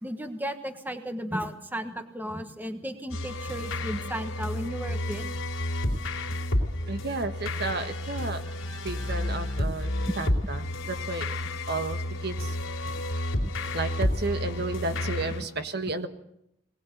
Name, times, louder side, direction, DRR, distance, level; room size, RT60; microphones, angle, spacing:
voice 1, 0.0-5.4 10.0-10.1, equal, 10° right, 7 dB, 1.4 m, -34 dB
sound 1, 3.1-15.4, left 1 dB, 90° left, 3.7 m, -31 dB
voice 2, 6.8-8.4 8.8-11.4 11.7-12.6 13.7-16.1, right 3 dB, 55° right, 8 dB, 1.4 m, -32 dB
22.0 x 19.0 x 8.0 m, 0.79 s
head